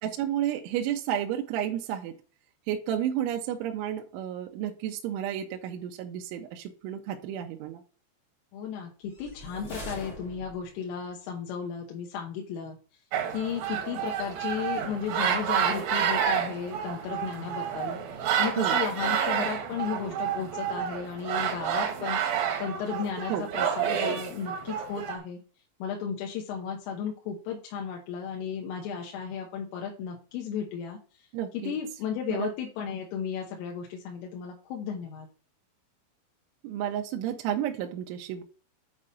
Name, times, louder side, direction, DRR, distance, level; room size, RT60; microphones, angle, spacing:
voice 1, 0.0-2.1 2.7-7.8 18.6-18.8 23.3-23.5 31.3-31.8 32.3-32.5 36.6-38.4, right 10 dB, 85° right, 3 dB, 3.1 m, -31 dB
voice 2, 8.5-12.8 13.3-22.2 22.6-25.4 25.8-31.3 31.5-35.3, left 7 dB, 85° left, 0 dB, 3.6 m, -34 dB
sound 1, 9.1-10.9, equal, 60° left, 0.9 m, -42 dB
sound 2, 13.1-25.2, right 8 dB, 65° right, 2.3 m, -29 dB
8.8 x 4.2 x 5.2 m, 0.38 s
omnidirectional pair, 5.8 m